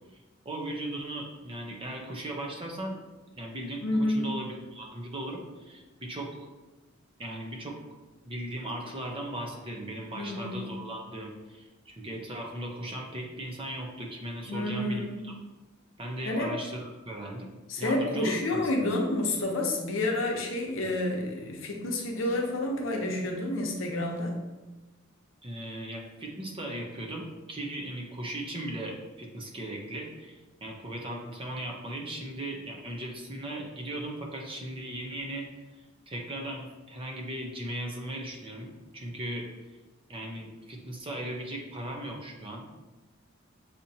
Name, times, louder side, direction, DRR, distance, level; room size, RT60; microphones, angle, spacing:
voice 1, 0.4-3.0 3.3-6.5 7.2-7.8 8.2-15.3 16.0-17.5 17.8-18.9 25.4-35.5 36.1-39.5 40.1-42.7, right 1 dB, 25° right, 0 dB, 0.7 m, -37 dB
voice 2, 3.8-4.3 10.1-10.6 14.5-15.2 16.2-16.5 17.7-24.4, left 1 dB, 70° left, 1 dB, 0.8 m, -29 dB
6.6 x 2.8 x 2.7 m, 1.1 s
head